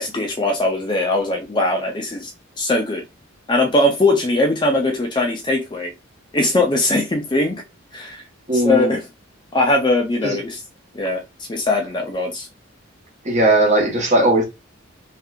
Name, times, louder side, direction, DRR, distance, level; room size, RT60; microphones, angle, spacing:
voice 1, 0.0-2.3 2.6-3.0 3.5-5.9 6.3-7.6 7.9-8.2 8.5-9.0 9.5-10.6 10.9-11.2 11.5-12.5, left 2 dB, 20° left, 0.5 m, -20 dB
voice 2, 8.5-9.0 10.2-10.4 13.2-14.4, right 1 dB, 35° right, 1.0 m, -17 dB
3.2 x 2.9 x 2.4 m
head